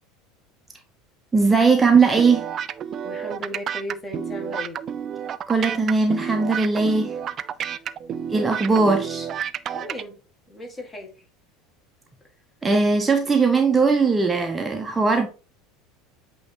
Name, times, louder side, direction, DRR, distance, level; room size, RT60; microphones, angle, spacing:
voice 1, 1.3-2.5 5.5-7.1 8.3-9.3 12.6-15.3, right 4 dB, 15° right, 0.8 m, -19 dB
sound 1, 2.2-10.0, right 8 dB, 40° right, 0.4 m, -30 dB
voice 2, 3.0-4.8 8.7-8.8 9.7-10.2 10.5-11.1, left 1 dB, 20° left, 2.0 m, -35 dB
8.4 x 3.1 x 3.9 m
figure-of-eight pair, 70°, 0 cm